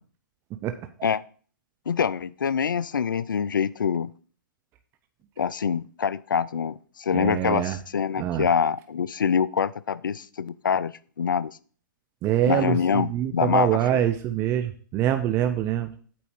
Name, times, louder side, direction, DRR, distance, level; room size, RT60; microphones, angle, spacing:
voice 1, 1.9-4.1 5.4-10.9 11.2-11.6 12.5-14.0, left 7 dB, 80° left, 19 dB, 0.4 m, -25 dB
voice 2, 7.1-7.8 8.2-8.5 12.2-15.9, right 11 dB, 25° right, 8 dB, 0.6 m, -25 dB
8.6 x 4.2 x 7.1 m, 0.44 s
hypercardioid pair, 130°, 11 cm